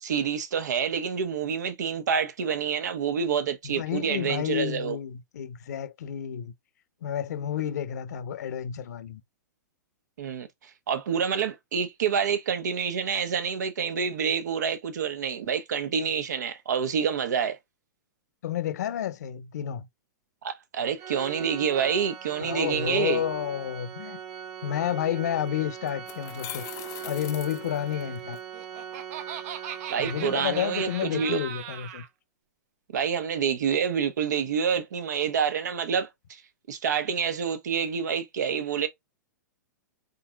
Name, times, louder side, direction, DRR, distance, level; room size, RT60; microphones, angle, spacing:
voice 1, 0.0-5.0 10.2-10.5 10.9-17.6 20.4-23.2 29.9-31.4 32.9-36.1 36.7-38.9, right 7 dB, 70° right, 1.0 m, -27 dB
voice 2, 3.6-6.5 7.0-9.2 18.4-19.9 22.4-24.2 24.6-26.6 27.0-28.4 30.0-32.0, left 10 dB, 65° left, 0.8 m, -30 dB
Organ, 21.0-31.7, right 9 dB, 35° right, 1.5 m, -40 dB
sound 1, 25.2-25.3 25.9-28.4, left 13 dB, 35° left, 0.6 m, -41 dB
Laughter, 28.3-32.1, right 10 dB, 55° right, 0.8 m, -39 dB
4.1 x 3.8 x 2.3 m
hypercardioid pair, 115°, 10 cm